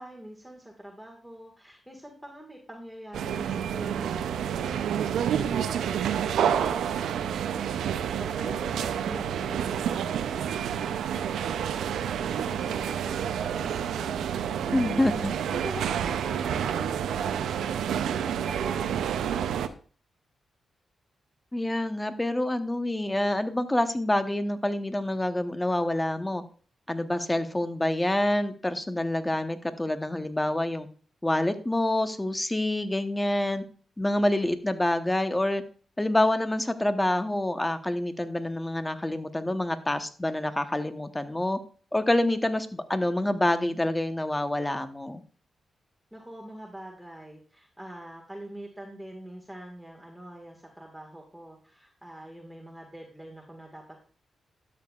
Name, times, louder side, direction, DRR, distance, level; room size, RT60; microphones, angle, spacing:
voice 1, 0.0-19.4 46.1-54.0, right 1 dB, 5° right, 0 dB, 1.8 m, -44 dB
sound 1, 3.1-19.7, right 9 dB, 85° right, 0.5 m, -29 dB
voice 2, 14.7-15.3 21.5-26.4 26.9-30.9 31.2-33.6 34.0-35.6 36.0-41.6 41.9-45.2, left 1 dB, 15° left, 9 dB, 1.0 m, -27 dB
12.5 x 6.8 x 2.4 m, 0.42 s
supercardioid pair, 50°, 0 cm